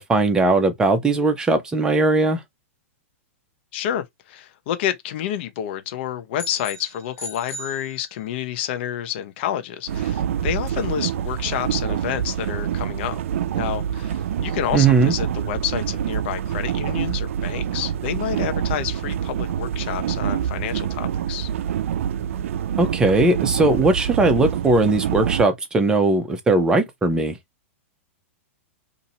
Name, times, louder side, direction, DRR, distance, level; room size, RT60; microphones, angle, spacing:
voice 1, 0.0-2.4 14.7-15.1 22.8-27.4, right 3 dB, 10° right, 0.7 m, -19 dB
voice 2, 3.7-13.2 13.5-21.5, left 10 dB, 50° left, 0.8 m, -29 dB
sound 1, 6.4-8.6, left 2 dB, 80° left, 1.3 m, -38 dB
sound 2, 9.9-25.5, right 9 dB, 70° right, 0.4 m, -26 dB
2.8 x 2.7 x 4.0 m
hypercardioid pair, 150°, 7 cm